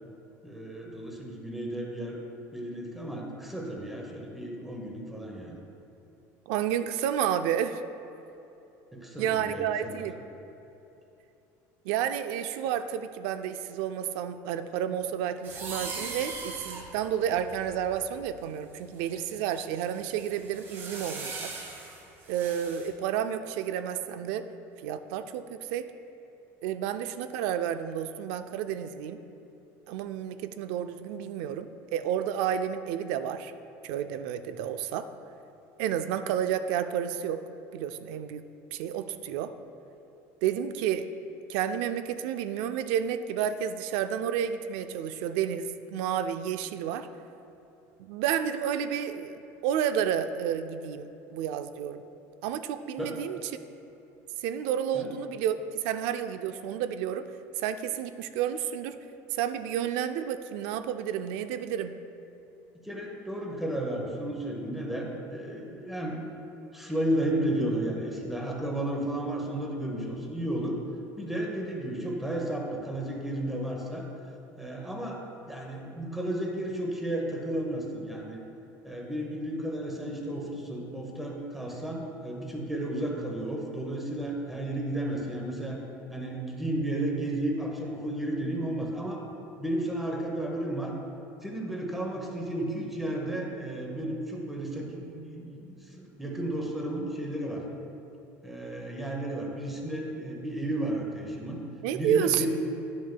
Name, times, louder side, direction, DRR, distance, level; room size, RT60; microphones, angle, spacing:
voice 1, 0.4-2.2 2.5-5.6 8.9-10.1 53.0-53.2 54.9-55.1 62.8-66.2 66.7-70.8 71.2-74.1 74.6-75.2 75.5-78.4 78.8-85.8 86.1-89.2 89.6-90.9 91.4-97.6 98.4-101.6 101.9-102.5, right 1 dB, 5° right, -1 dB, 0.9 m, -33 dB
voice 2, 6.5-7.8 9.2-10.1 11.8-21.5 22.3-24.5 24.8-25.9 26.6-29.2 29.9-33.5 33.8-35.1 35.8-37.4 37.7-38.4 38.7-39.5 40.4-41.1 41.5-47.1 48.0-52.0 52.4-53.4 54.4-57.3 57.6-59.0 59.3-62.0 101.8-102.5, right 9 dB, 75° right, 10 dB, 0.4 m, -31 dB
sound 1, 15.4-18.4 19.0-22.9, right 4 dB, 35° right, 0.9 m, -41 dB
10.5 x 6.3 x 2.2 m, 2.9 s
cardioid pair, 155°, 7 cm